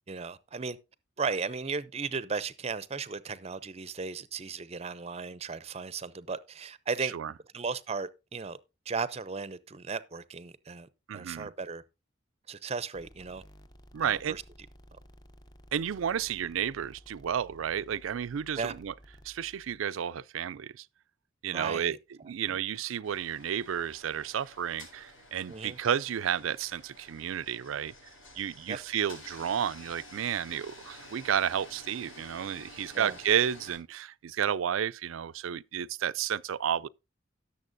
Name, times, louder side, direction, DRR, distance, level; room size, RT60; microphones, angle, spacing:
voice 1, 0.1-0.8 1.2-7.1 7.5-8.6 8.9-11.8 12.5-13.4 14.0-14.4 18.6-18.7 21.5-22.0 22.5-22.6 25.5-25.8 28.7-28.8 32.9-33.2, right 5 dB, 30° right, 0.5 m, -36 dB
voice 2, 7.0-7.4 11.1-11.5 13.9-14.4 15.7-19.0 19.2-20.9 21.4-27.9 28.4-36.9, right 9 dB, 85° right, 0.4 m, -32 dB
sound 1, 12.9-19.8, equal, 20° left, 0.7 m, -55 dB
sound 2, 23.0-33.8, left 1 dB, 65° left, 7.3 m, -51 dB
17.5 x 6.9 x 2.6 m
head